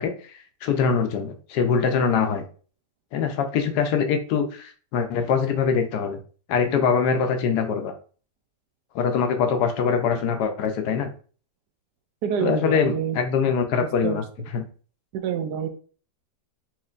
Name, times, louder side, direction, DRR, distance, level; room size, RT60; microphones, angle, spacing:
voice 1, 0.0-2.4 3.1-6.2 6.5-7.9 8.9-11.1 12.4-14.2 14.5-14.6, left 6 dB, 75° left, 6 dB, 1.1 m, -23 dB
voice 2, 12.2-13.2 14.0-14.2 15.1-15.7, right 8 dB, 75° right, 6 dB, 1.1 m, -27 dB
4.3 x 3.0 x 2.4 m, 0.40 s
omnidirectional pair, 1.8 m